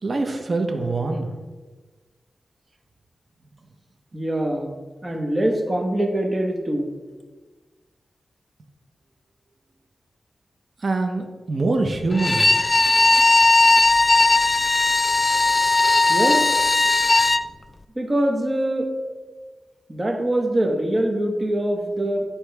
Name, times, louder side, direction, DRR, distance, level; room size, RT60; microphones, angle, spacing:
voice 1, 0.0-1.3 10.8-12.5, right 3 dB, 55° right, 5 dB, 0.9 m, -24 dB
voice 2, 4.1-4.7 5.0-6.9 16.1-16.4 17.9-18.9 19.9-22.2, right 1 dB, 30° right, 2 dB, 1.3 m, -23 dB
Bowed string instrument, 12.1-17.5, left 3 dB, 35° left, 0.3 m, -17 dB
11.0 x 4.3 x 3.4 m, 1.3 s
cardioid pair, 60°, 0 cm